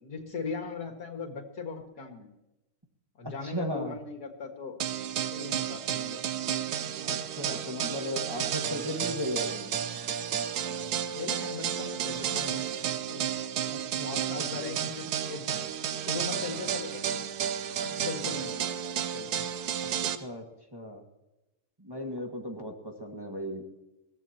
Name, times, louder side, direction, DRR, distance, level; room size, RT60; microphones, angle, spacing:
voice 1, 0.0-2.3 3.2-4.7 5.3-6.2 11.1-12.6 13.1-13.3 14.0-15.7 16.1-17.2 17.8-18.5 19.1-19.4, left 4 dB, 85° left, 4 dB, 2.5 m, -39 dB
voice 2, 3.2-4.0 7.0-9.7 13.7-14.6 16.3-16.4 20.1-20.4 20.7-21.0 21.8-23.6, left 1 dB, 15° right, 0 dB, 1.7 m, -36 dB
sound 1, 4.8-20.2, right 9 dB, 80° right, 1.3 m, -32 dB
22.0 x 16.0 x 2.9 m, 0.97 s
omnidirectional pair, 1.6 m